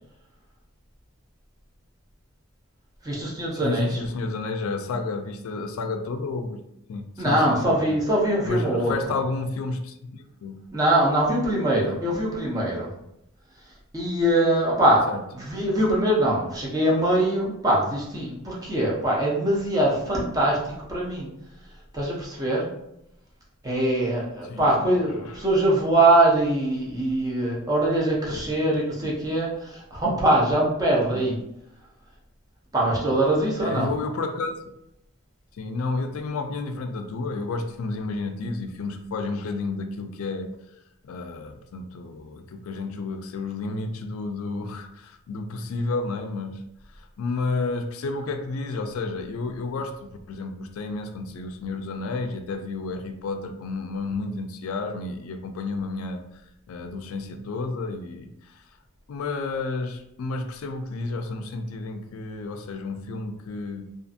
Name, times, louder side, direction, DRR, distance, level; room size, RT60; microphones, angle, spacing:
voice 1, 3.0-4.0 7.2-8.9 10.7-12.9 13.9-15.0 15.3-21.3 21.9-22.7 23.6-31.4 32.7-33.9, right 1 dB, 15° right, -4 dB, 0.6 m, -22 dB
voice 2, 3.5-6.6 6.9-7.8 8.4-10.6 11.9-12.0 15.1-15.2 24.4-25.4 28.3-28.5 31.1-31.2 33.6-34.6 35.5-40.5 41.0-46.6 46.9-56.4 56.7-58.6 59.1-63.9, left 3 dB, 80° left, 6 dB, 0.3 m, -31 dB
2.6 x 2.4 x 2.4 m, 0.82 s
head